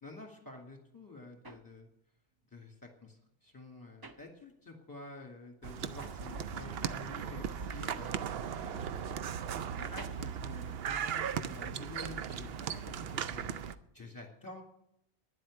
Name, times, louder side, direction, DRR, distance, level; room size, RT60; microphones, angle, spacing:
voice 1, 0.0-1.9 2.5-13.6 13.9-14.6, left 2 dB, 15° left, 2 dB, 2.4 m, -50 dB
sound 1, 0.9-5.0 5.3-11.5, right 3 dB, 25° right, 0.6 m, -55 dB
sound 2, 5.6-13.8, right 8 dB, 65° right, 0.8 m, -37 dB
10.0 x 7.7 x 9.7 m, 0.78 s
omnidirectional pair, 1.2 m